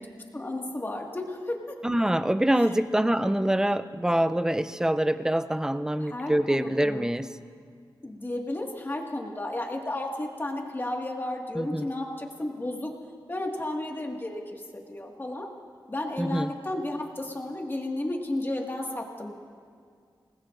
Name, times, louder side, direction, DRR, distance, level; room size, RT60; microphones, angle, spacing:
voice 1, 0.3-1.8 2.6-2.7 6.0-7.1 8.0-12.9 13.3-15.5 15.9-19.4, left 1 dB, 25° left, 1 dB, 1.9 m, -33 dB
voice 2, 1.8-7.3 11.5-11.9 16.2-16.5, right 1 dB, 5° right, 12 dB, 0.5 m, -25 dB
27.5 x 19.0 x 2.6 m, 2.1 s
wide cardioid pair, 95°, 8 cm